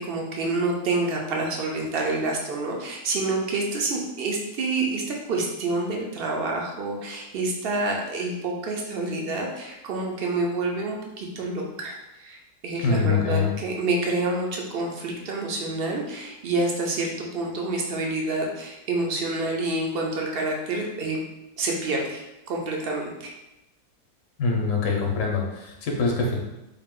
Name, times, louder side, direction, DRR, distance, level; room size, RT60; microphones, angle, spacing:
voice 1, 0.0-12.4 12.6-21.2 21.6-22.2 22.5-23.3, right 2 dB, 55° right, 0 dB, 0.6 m, -28 dB
voice 2, 12.8-13.5 24.4-26.4, left 4 dB, 60° left, 0 dB, 1.1 m, -24 dB
3.8 x 2.4 x 3.6 m, 0.94 s
omnidirectional pair, 1.6 m